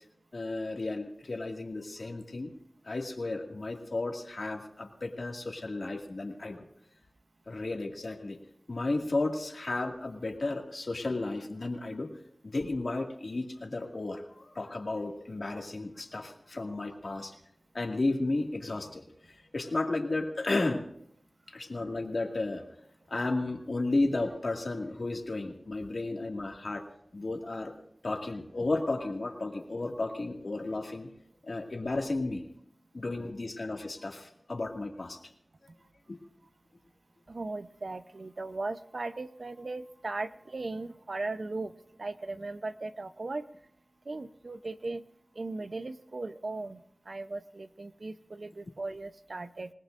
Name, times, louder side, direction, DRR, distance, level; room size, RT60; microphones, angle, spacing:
voice 1, 0.3-2.5 2.8-6.6 7.5-8.4 8.7-12.1 12.4-17.3 17.7-19.0 19.3-20.9 21.5-22.6 23.1-26.8 27.1-27.7 28.0-31.1 31.4-32.4 32.9-35.2 36.1-36.2, left 2 dB, 70° left, 2 dB, 2.1 m, -33 dB
voice 2, 37.3-43.5 44.0-45.0 45.3-49.7, right 3 dB, 70° right, 10 dB, 0.7 m, -38 dB
27.5 x 18.0 x 2.6 m, 0.70 s
wide cardioid pair, 55°, 0 cm